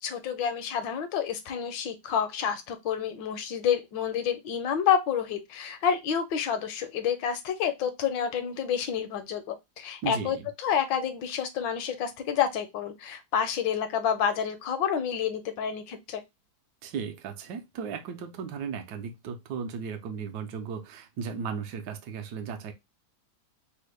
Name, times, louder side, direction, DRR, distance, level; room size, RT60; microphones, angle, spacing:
voice 1, 0.0-16.2, left 8 dB, 75° left, 1.2 m, -29 dB
voice 2, 10.0-10.5 16.8-22.7, right 6 dB, 70° right, 1.1 m, -36 dB
3.5 x 2.1 x 3.1 m
omnidirectional pair, 2.1 m